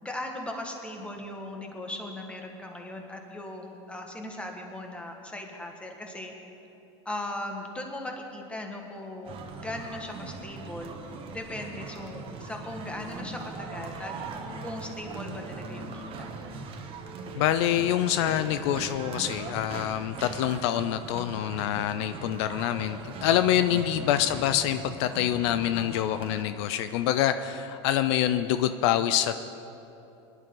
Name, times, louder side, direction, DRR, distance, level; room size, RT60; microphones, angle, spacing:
voice 1, 0.0-6.3 7.0-10.9 11.3-14.1 14.6-16.3, left 1 dB, 10° left, 2 dB, 1.6 m, -38 dB
sound 1, 9.2-26.4, right 4 dB, 40° right, 1.2 m, -40 dB
voice 2, 17.4-29.4, left 11 dB, 70° left, 11 dB, 0.5 m, -26 dB
20.0 x 11.0 x 3.9 m, 2.9 s
supercardioid pair, 125°, 15 cm